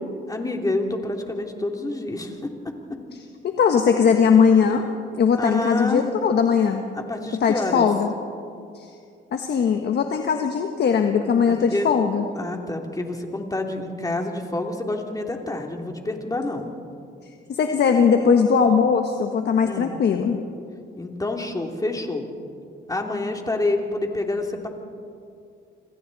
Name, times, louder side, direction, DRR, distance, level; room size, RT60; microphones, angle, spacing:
voice 1, 0.3-2.3 5.4-6.0 6.9-7.9 11.4-11.9 12.3-16.7 19.6-19.9 21.0-22.2 22.9-24.7, left 2 dB, 20° left, 2 dB, 3.1 m, -28 dB
voice 2, 3.4-4.8 5.1-6.8 7.4-8.1 8.7-8.9 9.3-12.2 17.5-20.4, left 6 dB, 55° left, 5 dB, 1.4 m, -19 dB
27.5 x 25.5 x 4.2 m, 2.4 s
cardioid pair, 90°, 20 cm